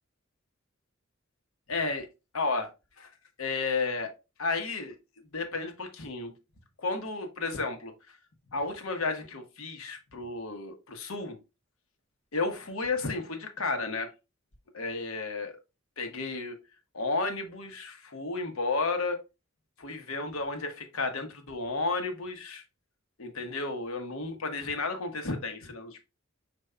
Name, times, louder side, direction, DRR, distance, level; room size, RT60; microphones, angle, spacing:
voice 1, 1.7-2.1 2.3-2.7 3.0-3.1 3.4-4.1 4.4-4.9 5.3-6.3 6.8-7.9 8.5-11.4 12.3-14.1 14.7-15.6 16.0-16.6 16.9-19.2 19.8-22.6 23.2-26.0, left 3 dB, 85° left, 1.0 m, -32 dB
5.2 x 4.5 x 2.2 m
head